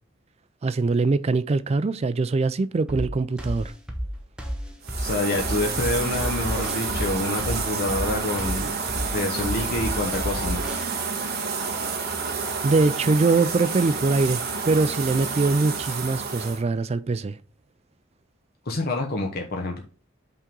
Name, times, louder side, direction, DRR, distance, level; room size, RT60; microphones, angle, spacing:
voice 1, 0.6-3.7 12.6-14.4 14.7-17.4, right 3 dB, 30° right, 0.3 m, -22 dB
sound 1, 2.9-10.9, equal, 5° right, 0.8 m, -32 dB
sound 2, 4.8-16.6, right 5 dB, 50° right, 1.0 m, -29 dB
voice 2, 5.0-10.6 18.7-19.8, left 2 dB, 50° left, 0.9 m, -27 dB
5.6 x 3.7 x 5.2 m
head